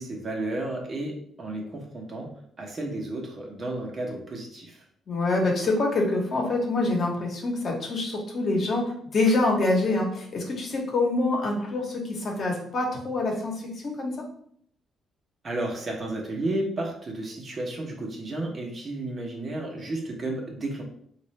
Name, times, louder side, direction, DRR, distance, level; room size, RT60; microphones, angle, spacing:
voice 1, 0.0-2.3 2.6-4.8 15.4-20.8, right 2 dB, 40° right, 0 dB, 1.0 m, -32 dB
voice 2, 5.1-13.5 13.8-14.3, left 2 dB, 50° left, 0 dB, 1.0 m, -26 dB
3.8 x 2.5 x 3.2 m, 0.64 s
cardioid pair, 90°, 0 cm